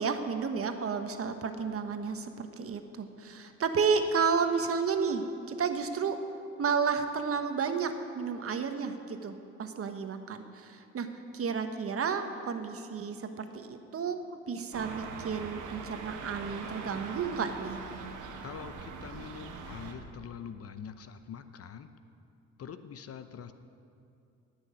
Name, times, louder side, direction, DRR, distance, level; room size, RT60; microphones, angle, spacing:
voice 1, 0.0-6.2 6.6-11.1 11.3-14.2 14.5-17.8, right 5 dB, 50° right, 7 dB, 1.2 m, -32 dB
sound 1, 14.7-19.9, right 4 dB, 90° right, 1.5 m, -42 dB
voice 2, 18.4-21.9 22.6-23.5, left 7 dB, 50° left, 10 dB, 0.8 m, -44 dB
16.5 x 6.4 x 9.5 m, 2.7 s
cardioid pair, 90°, 30 cm